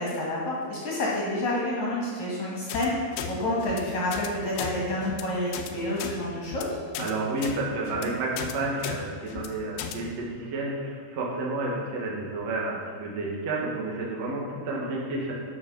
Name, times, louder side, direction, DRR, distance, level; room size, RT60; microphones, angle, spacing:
voice 1, 0.0-6.6, left 1 dB, 55° left, -5 dB, 2.2 m, -29 dB
sound 1, 2.7-2.9 3.2-3.3 3.6-3.8 4.1-4.3 4.6-4.7 5.0-5.2 5.5-5.7 6.0-6.1 6.5-6.6 6.9-7.1 7.4-7.6 7.9-8.1 8.4-8.5 8.8-9.0 9.3-9.5 9.8-10.0, left 9 dB, 85° left, 2.9 m, -34 dB
voice 2, 7.0-15.3, right 2 dB, 50° right, -3 dB, 2.1 m, -30 dB
11.5 x 6.6 x 5.5 m, 2.1 s
omnidirectional pair, 5.6 m